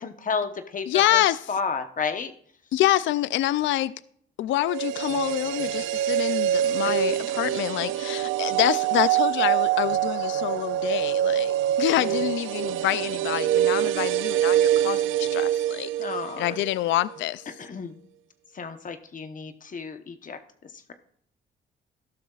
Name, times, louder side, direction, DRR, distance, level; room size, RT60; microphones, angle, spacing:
voice 1, 0.0-2.3 6.8-7.0 12.0-12.3 16.0-16.6 17.6-18.0 18.5-20.9, left 5 dB, 40° left, 1.0 m, -32 dB
voice 2, 0.9-1.4 2.7-3.9 4.4-15.9 16.4-17.5, left 14 dB, 70° left, 0.4 m, -26 dB
sound 1, 4.6-16.7 17.0-17.1, right 12 dB, 90° right, 0.4 m, -25 dB
13.0 x 12.0 x 2.4 m
cardioid pair, 90°, 20 cm